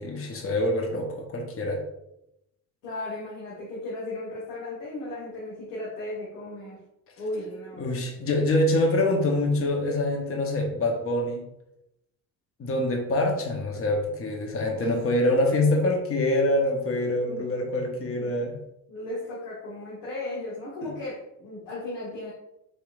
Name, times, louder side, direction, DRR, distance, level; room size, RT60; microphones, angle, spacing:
voice 1, 0.0-1.8 7.8-11.4 12.6-18.6 20.8-20.9, left 1 dB, 30° left, 2 dB, 0.9 m, -25 dB
voice 2, 2.8-6.8 7.2-7.9 14.8-15.0 17.2-17.5 18.9-22.3, left 2 dB, 80° left, -7 dB, 1.4 m, -36 dB
4.2 x 3.0 x 2.4 m, 0.85 s
hypercardioid pair, 65°, 46 cm